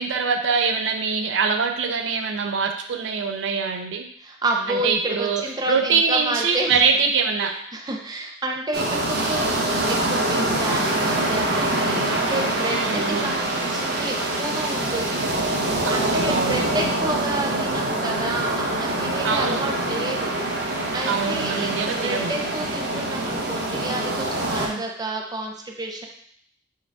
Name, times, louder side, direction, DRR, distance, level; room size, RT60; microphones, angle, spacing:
voice 1, 0.0-4.0 4.7-7.5 12.6-13.3 15.8-16.7 19.2-19.6 21.1-22.3 24.6-24.8, right 5 dB, 75° right, 6 dB, 0.4 m, -24 dB
voice 2, 4.2-7.1 7.7-15.2 15.5-20.3 20.9-26.1, right 2 dB, 20° right, 2 dB, 0.5 m, -30 dB
sound 1, 8.7-24.7, right 1 dB, 60° right, 0.8 m, -25 dB
4.5 x 2.3 x 4.6 m, 0.62 s
head